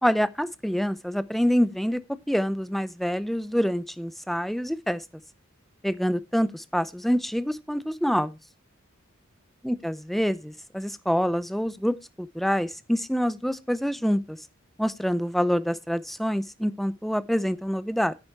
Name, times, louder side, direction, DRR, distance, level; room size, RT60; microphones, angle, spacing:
voice 1, 0.0-2.0 2.3-5.0 5.8-8.4 9.6-14.4 14.8-18.1, equal, ahead, 0.6 m, -26 dB
10.0 x 8.6 x 4.6 m
head